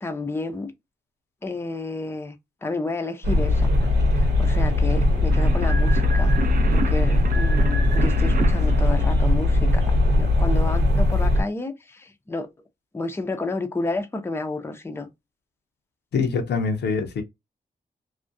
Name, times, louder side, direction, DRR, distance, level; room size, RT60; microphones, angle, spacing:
voice 1, 0.0-0.7 1.4-2.4 2.6-3.7 4.1-6.4 6.7-12.5 12.9-15.1, left 3 dB, 15° left, 0.5 m, -31 dB
sound 1, 3.2-11.4, left 1 dB, 90° right, 1.0 m, -19 dB
sound 2, 5.3-9.8, right 5 dB, 55° right, 0.5 m, -33 dB
voice 2, 16.1-17.2, left 5 dB, 90° left, 0.5 m, -24 dB
2.3 x 2.1 x 2.5 m
cardioid pair, 75°, 17 cm